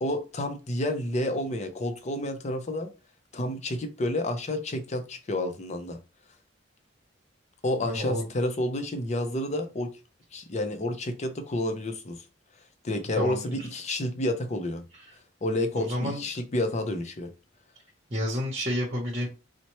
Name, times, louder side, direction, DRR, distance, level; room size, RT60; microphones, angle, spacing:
voice 1, 0.0-2.9 3.3-6.0 7.6-9.9 10.3-12.2 12.8-14.8 15.4-17.3, left 1 dB, 35° left, 0.6 m, -30 dB
voice 2, 7.8-8.3 13.2-13.7 14.9-15.0 15.8-16.2 18.1-19.3, equal, 35° right, 0.9 m, -30 dB
4.1 x 2.1 x 3.0 m
head